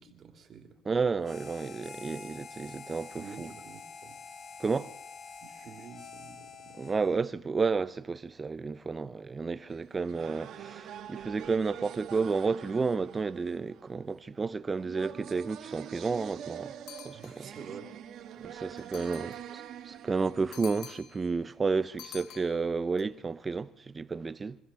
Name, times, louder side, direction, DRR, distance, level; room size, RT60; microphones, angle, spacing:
voice 1, 0.0-0.8 3.1-4.2 5.4-7.1 17.1-17.9 18.8-19.4, right 6 dB, 40° right, 2.8 m, -49 dB
voice 2, 0.9-3.5 4.6-4.9 6.8-16.7 17.0-17.5 18.4-19.3 19.8-24.6, right 4 dB, 20° right, 0.8 m, -31 dB
Harmonica, 1.2-7.2, left 5 dB, 35° left, 1.2 m, -47 dB
sound 1, 9.7-21.6, right 10 dB, 55° right, 1.8 m, -45 dB
sound 2, 16.9-17.6 18.8-19.5 20.5-21.3 22.0-23.0, left 9 dB, 65° left, 1.3 m, -48 dB
25.5 x 14.5 x 7.0 m
cardioid pair, 135°, 0 cm